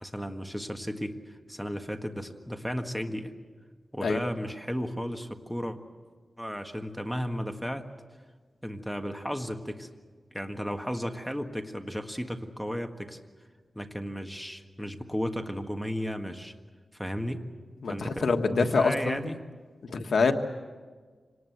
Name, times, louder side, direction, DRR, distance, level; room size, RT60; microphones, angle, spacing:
voice 1, 0.0-3.3 3.9-5.8 6.4-7.9 8.6-9.9 10.3-13.2 13.7-16.5 16.9-17.4 17.9-19.4, equal, ahead, 6 dB, 1.7 m, -34 dB
voice 2, 17.8-19.2 19.8-20.3, left 4 dB, 80° left, 5 dB, 1.4 m, -25 dB
25.5 x 19.0 x 8.0 m, 1.5 s
wide cardioid pair, 85°, 0 cm